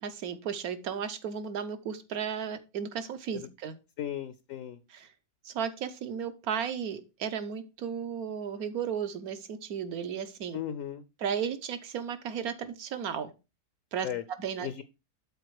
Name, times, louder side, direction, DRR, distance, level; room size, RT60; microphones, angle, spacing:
voice 1, 0.0-3.8 4.9-5.1 5.4-10.6 11.2-13.3 13.9-14.1 14.4-14.7, right 7 dB, 65° right, 11 dB, 1.4 m, -34 dB
voice 2, 4.0-4.8 10.5-11.0 14.0-14.2 14.6-14.8, left 10 dB, 65° left, 13 dB, 0.9 m, -36 dB
12.0 x 4.1 x 4.7 m, 0.28 s
omnidirectional pair, 1.7 m